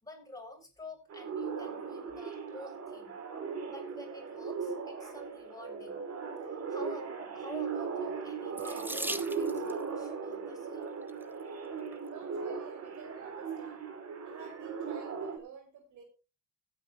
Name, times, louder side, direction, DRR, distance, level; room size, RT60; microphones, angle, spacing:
voice 1, 0.0-3.2 3.7-6.0 6.5-7.1 7.3-10.9, left 2 dB, 10° left, 0 dB, 6.9 m, -49 dB
sound 1, 1.1-15.4, right 5 dB, 55° right, 3.0 m, -38 dB
Water tap faucet / Sink (filling or washing), 8.5-9.8 10.8-11.2 11.9-12.0 12.4-12.5, right 1 dB, 5° right, 1.0 m, -39 dB
voice 2, 12.1-13.8 14.2-16.0, right 7 dB, 75° right, 3 dB, 5.1 m, -51 dB
16.5 x 9.2 x 3.1 m, 0.30 s
cardioid pair, 90°, 30 cm